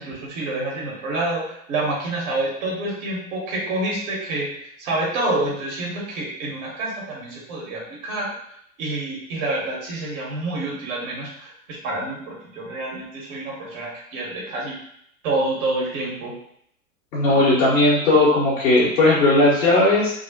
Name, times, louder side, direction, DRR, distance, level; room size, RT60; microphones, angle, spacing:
voice 1, 0.0-4.5 4.8-8.3 8.8-14.8 15.2-16.4, right 2 dB, 60° right, -3 dB, 1.3 m, -27 dB
voice 2, 17.1-20.1, left 2 dB, 75° left, -8 dB, 1.3 m, -17 dB
3.1 x 2.1 x 2.8 m, 0.69 s
hypercardioid pair, 100°, 43 cm